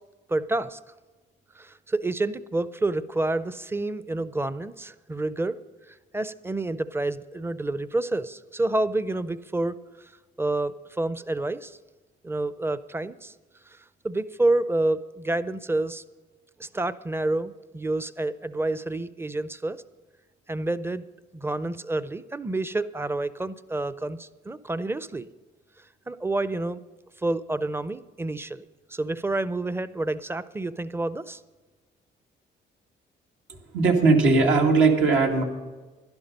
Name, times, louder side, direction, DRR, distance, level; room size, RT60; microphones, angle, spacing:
voice 1, 0.3-0.8 1.6-5.5 5.9-10.1 10.4-11.8 12.2-13.3 13.7-13.8 14.0-16.0 16.6-19.8 20.5-21.1 21.3-25.3 26.1-26.8 27.2-31.4, right 2 dB, 10° right, 15 dB, 0.5 m, -28 dB
voice 2, 33.7-35.4, right 3 dB, 80° right, 1 dB, 2.2 m, -19 dB
11.5 x 11.0 x 5.3 m, 1.2 s
cardioid pair, 90°, 20 cm